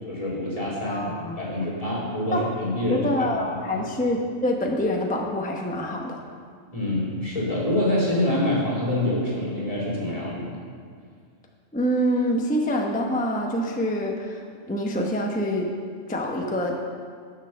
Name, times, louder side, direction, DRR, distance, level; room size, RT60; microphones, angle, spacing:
voice 1, 0.1-1.1 1.4-3.1 3.5-3.8 6.7-10.5, left 1 dB, 25° left, -6 dB, 2.9 m, -26 dB
voice 2, 0.9-1.7 2.3-2.5 2.9-6.2 11.7-15.7 16.1-16.8, equal, 10° left, 1 dB, 0.7 m, -26 dB
10.0 x 7.3 x 6.6 m, 2.1 s
omnidirectional pair, 1.4 m